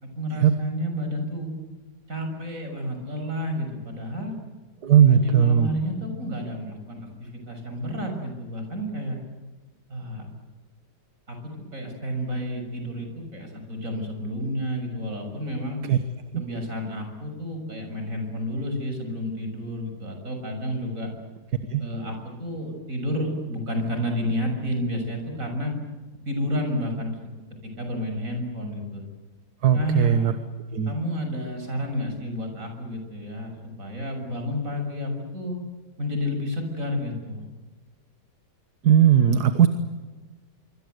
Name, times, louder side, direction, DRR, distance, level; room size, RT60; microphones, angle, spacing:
voice 1, 0.0-1.5 2.1-4.4 5.1-9.2 9.9-10.3 11.3-15.8 16.4-21.1 21.8-25.7 26.3-27.2 27.6-29.0 29.7-30.3 30.9-35.6 36.0-37.5, equal, 45° right, 4 dB, 7.1 m, -30 dB
voice 2, 4.8-5.7 15.9-16.0 16.3-16.4 21.7-21.8 29.6-30.3 30.7-30.9 38.8-39.7, right 9 dB, 60° right, 9 dB, 1.8 m, -18 dB
25.5 x 25.5 x 8.0 m, 1.3 s
omnidirectional pair, 1.9 m